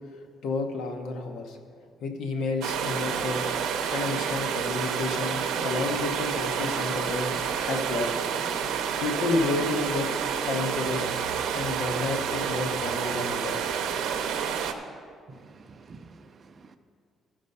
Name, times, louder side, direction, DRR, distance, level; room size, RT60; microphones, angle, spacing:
voice 1, 0.4-1.6 2.0-3.4 3.9-8.1 9.0-10.1 10.5-11.0 11.5-13.6, left 3 dB, 70° left, 5 dB, 1.0 m, -30 dB
sound 1, 2.6-14.7, right 7 dB, 90° right, 0.7 m, -29 dB
voice 2, 15.3-16.8, right 3 dB, 30° right, 8 dB, 0.5 m, -49 dB
14.0 x 5.2 x 5.4 m, 2.2 s
cardioid pair, 180°, 0 cm